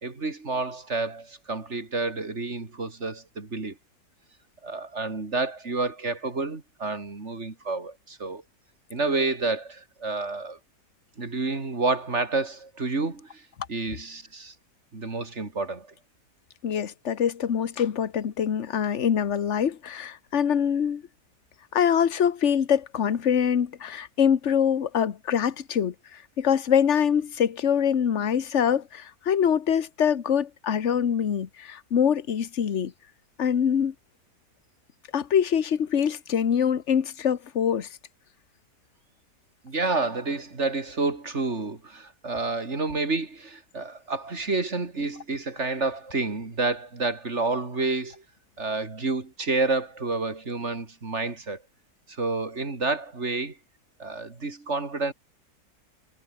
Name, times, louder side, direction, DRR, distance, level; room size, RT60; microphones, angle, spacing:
voice 1, 0.0-3.8 4.6-8.4 8.9-10.6 11.2-14.5 14.9-15.9 39.6-48.2 48.6-51.6 52.1-53.6 54.0-55.1, right 3 dB, 45° right, 3.2 m, -29 dB
voice 2, 16.6-21.0 21.7-32.9 33.4-33.9 35.1-37.9, left 8 dB, 50° left, 1.5 m, -24 dB
omnidirectional pair, 1.7 m